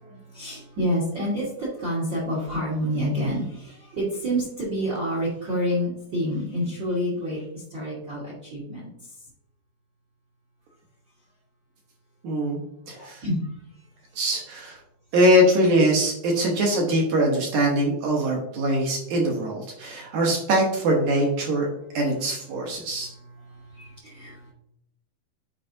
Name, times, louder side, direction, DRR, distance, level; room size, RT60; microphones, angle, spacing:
voice 1, 0.0-8.9 12.9-13.4 23.5-24.5, equal, 50° right, -4 dB, 1.4 m, -28 dB
voice 2, 12.2-12.6 12.9-13.2 14.2-14.8 15.1-21.7 21.9-23.1, right 1 dB, 65° right, -1 dB, 2.1 m, -22 dB
8.9 x 4.9 x 2.7 m, 0.75 s
omnidirectional pair, 4.3 m